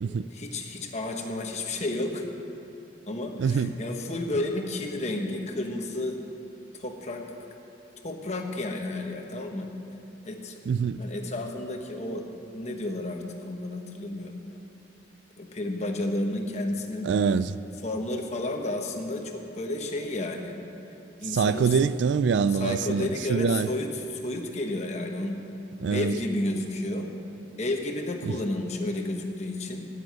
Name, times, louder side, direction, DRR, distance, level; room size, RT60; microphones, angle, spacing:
voice 1, 0.3-2.2 3.1-6.2 6.7-7.2 8.0-9.7 10.2-10.6 11.0-12.2 12.5-14.3 15.4-17.1 17.8-20.5 21.2-21.8 22.5-25.3 25.9-27.1 27.6-29.9, left 2 dB, 35° left, 1.0 m, -31 dB
voice 2, 3.4-3.7 10.7-11.0 17.0-17.6 21.3-23.7 25.8-26.1 28.2-28.3, right 5 dB, 70° right, 0.3 m, -24 dB
9.3 x 7.8 x 9.3 m
head